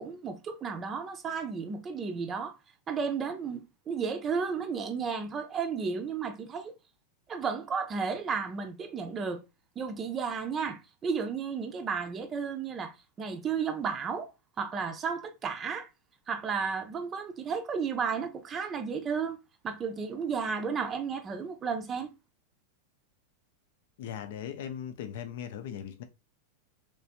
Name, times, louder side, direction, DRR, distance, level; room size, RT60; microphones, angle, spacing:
voice 1, 0.0-2.5 2.9-6.7 7.3-9.4 9.8-14.3 14.6-15.9 16.3-19.4 19.6-22.1, right 5 dB, 25° right, 0.6 m, -33 dB
voice 2, 24.0-26.0, left 9 dB, 55° left, 0.6 m, -38 dB
3.2 x 3.1 x 2.8 m
figure-of-eight pair, 90°, 0 cm